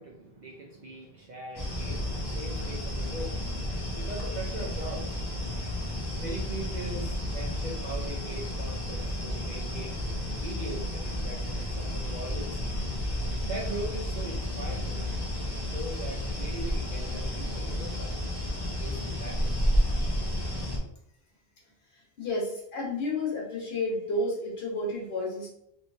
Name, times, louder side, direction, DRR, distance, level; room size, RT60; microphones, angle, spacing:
voice 1, 0.0-3.4 4.0-5.1 6.2-10.0 10.4-12.6 13.5-18.1 18.8-19.5, right 1 dB, 55° right, -1 dB, 0.6 m, -40 dB
sound 1, 1.6-20.8, left 1 dB, 25° left, 0.6 m, -31 dB
voice 2, 21.9-25.5, left 2 dB, 75° left, -3 dB, 1.3 m, -31 dB
3.1 x 3.1 x 2.6 m, 0.73 s
omnidirectional pair, 1.1 m